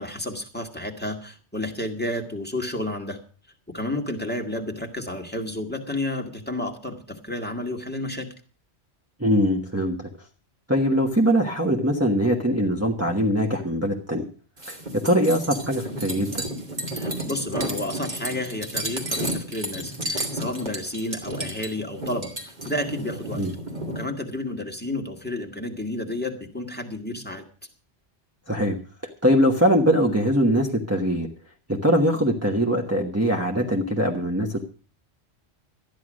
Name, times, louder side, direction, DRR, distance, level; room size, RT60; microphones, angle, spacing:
voice 1, 0.0-3.2 3.7-8.3 16.9-23.4 24.0-27.4, left 1 dB, 10° left, 3 dB, 1.9 m, -31 dB
voice 2, 9.2-10.1 10.7-14.3 14.6-16.4 23.4-23.5 28.5-28.8 29.2-31.3 31.7-34.6, equal, 15° right, -1 dB, 1.2 m, -22 dB
sound 1, 14.6-24.0, right 1 dB, 45° right, 2.9 m, -32 dB
13.0 x 10.5 x 6.2 m, 0.40 s
omnidirectional pair, 1.1 m